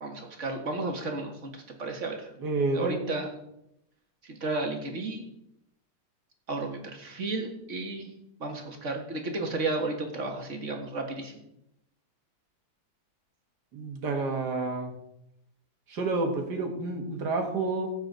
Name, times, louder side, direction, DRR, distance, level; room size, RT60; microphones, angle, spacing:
voice 1, 0.0-2.3 2.7-3.3 4.2-5.2 6.5-8.1 8.4-11.4, right 3 dB, 45° right, 3 dB, 2.0 m, -33 dB
voice 2, 2.4-3.0 13.7-14.9 15.9-17.9, right 3 dB, 75° right, 3 dB, 2.3 m, -29 dB
15.5 x 8.0 x 4.0 m, 0.81 s
omnidirectional pair, 1.8 m